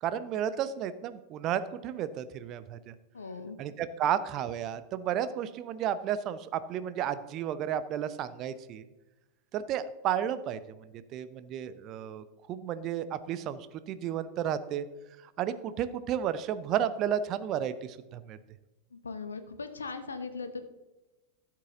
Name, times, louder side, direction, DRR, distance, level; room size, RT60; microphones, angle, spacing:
voice 1, 0.0-2.9 3.6-8.9 9.5-14.9 15.4-18.4, right 9 dB, 35° right, 13 dB, 0.7 m, -32 dB
voice 2, 3.1-3.6 18.9-20.6, left 4 dB, 75° left, 9 dB, 1.0 m, -39 dB
12.5 x 7.5 x 3.8 m, 1.1 s
figure-of-eight pair, 90°, 0 cm